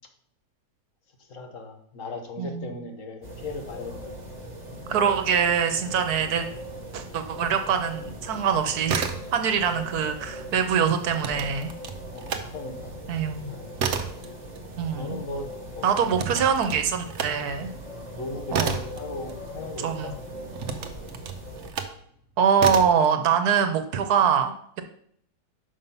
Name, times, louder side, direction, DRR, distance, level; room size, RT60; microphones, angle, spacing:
voice 1, 1.2-4.2 12.1-12.9 13.5-13.7 14.9-16.2 18.1-20.2, left 2 dB, 55° left, 5 dB, 1.2 m, -37 dB
voice 2, 2.4-2.7 4.9-6.5 6.9-11.7 13.1-13.5 14.8-15.2 15.8-17.7 18.5-18.7 19.8-20.1 22.4-24.8, right 7 dB, 75° right, 8 dB, 1.3 m, -24 dB
sound 1, 3.2-21.7, equal, 25° right, 1.5 m, -40 dB
sound 2, 8.9-9.7 10.0-12.5 12.9-19.9 20.5-22.0 22.6-23.1, right 6 dB, 55° right, 1.0 m, -32 dB
6.0 x 5.6 x 5.4 m, 0.66 s
omnidirectional pair, 1.7 m